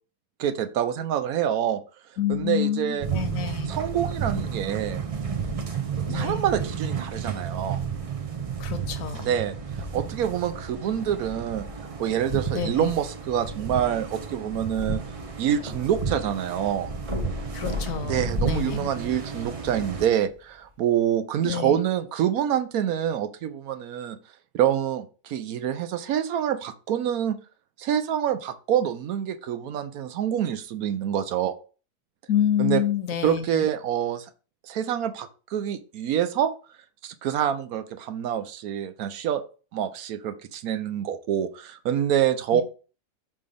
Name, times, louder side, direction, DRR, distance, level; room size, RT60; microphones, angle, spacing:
voice 1, 0.4-1.8 2.3-3.1 3.7-5.0 6.1-7.8 9.2-9.6 9.9-11.7 12.0-15.0 15.4-16.9 18.0-24.2 24.5-27.4 27.8-31.5 32.6-32.8 33.2-34.3 34.7-36.5 37.0-39.4 39.7-42.6, right 10 dB, 75° right, 11 dB, 1.1 m, -26 dB
voice 2, 2.2-3.7 6.1-6.4 8.6-9.4 12.5-12.9 17.5-18.9 21.4-21.8 32.3-33.7 42.5-42.6, left 9 dB, 65° left, 9 dB, 1.0 m, -28 dB
sound 1, 3.0-20.1, right 5 dB, 50° right, 0.4 m, -32 dB
sound 2, 14.8-16.2 16.5-16.6 17.0-19.6 20.3-20.4, left 1 dB, 25° right, 1.0 m, -35 dB
5.3 x 3.4 x 5.1 m, 0.36 s
omnidirectional pair, 1.6 m